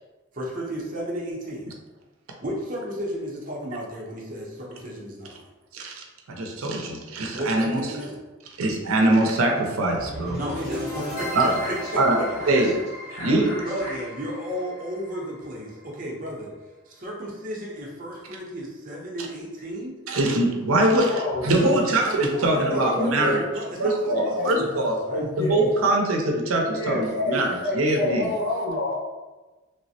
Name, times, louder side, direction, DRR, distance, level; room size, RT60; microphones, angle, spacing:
voice 1, 0.3-1.7 2.4-5.3 7.4-8.2 10.3-11.4 11.7-11.8 12.2-12.3 13.6-16.5 16.9-20.0 22.0-23.3 23.5-25.2, equal, 40° right, -4 dB, 0.6 m, -34 dB
voice 2, 5.7-7.8 8.6-10.4 11.3-11.6 12.0-12.2 12.5-12.7 13.2-13.6 20.1-23.4 23.8-25.0 25.4-28.3, right 1 dB, 85° right, 2 dB, 0.5 m, -23 dB
sound 1, 10.0-16.0, left 1 dB, 80° left, 1.3 m, -35 dB
voice 3, 21.0-21.8 22.7-23.4 24.1-24.7 25.1-25.7 26.7-28.9, left 2 dB, 55° left, -5 dB, 0.8 m, -28 dB
3.2 x 2.0 x 2.7 m, 1.2 s
head